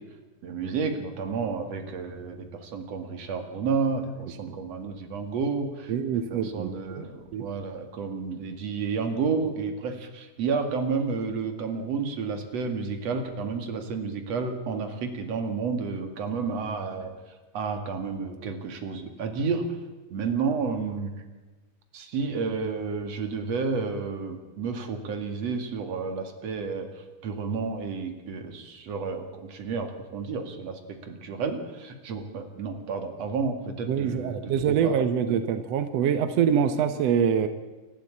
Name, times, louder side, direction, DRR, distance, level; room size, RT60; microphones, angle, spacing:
voice 1, 0.4-17.1 17.5-19.7 20.1-21.1 21.9-26.9 27.2-35.0, right 5 dB, 50° right, 6 dB, 2.8 m, -31 dB
voice 2, 5.9-7.0 7.3-7.5 33.9-37.5, right 8 dB, 75° right, 10 dB, 1.5 m, -25 dB
28.0 x 12.0 x 8.6 m, 1.3 s
omnidirectional pair, 4.3 m